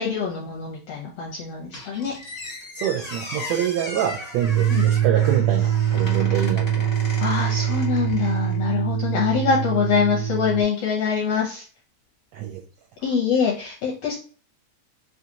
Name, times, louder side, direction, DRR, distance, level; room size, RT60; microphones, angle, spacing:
voice 1, 0.0-2.2 4.7-4.9 6.4-6.5 7.2-11.6 13.0-14.2, left 6 dB, 75° left, -3 dB, 1.4 m, -24 dB
Squeak, 1.7-8.6, left 1 dB, 50° left, 0.7 m, -36 dB
voice 2, 2.7-7.0 12.3-12.6, right 10 dB, 85° right, 0 dB, 1.5 m, -26 dB
sound 1, 4.4-10.6, right 10 dB, 70° right, 1.7 m, -23 dB
5.6 x 2.5 x 2.8 m, 0.40 s
omnidirectional pair, 3.7 m